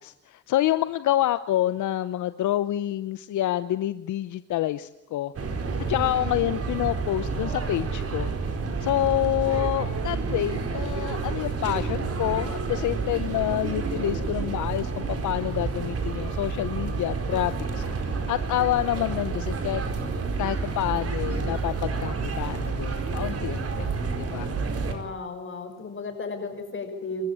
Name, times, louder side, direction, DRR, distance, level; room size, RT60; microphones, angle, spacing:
voice 1, 0.0-5.3 5.8-8.3 8.8-19.8 20.4-23.9 24.2-24.5, left 13 dB, 75° left, 14 dB, 0.9 m, -27 dB
sound 1, 5.3-24.9, right 4 dB, 50° right, 4.6 m, -29 dB
voice 2, 24.8-27.3, left 2 dB, 40° left, 6 dB, 6.0 m, -34 dB
27.5 x 14.5 x 8.9 m, 0.88 s
cardioid pair, 90°, 30 cm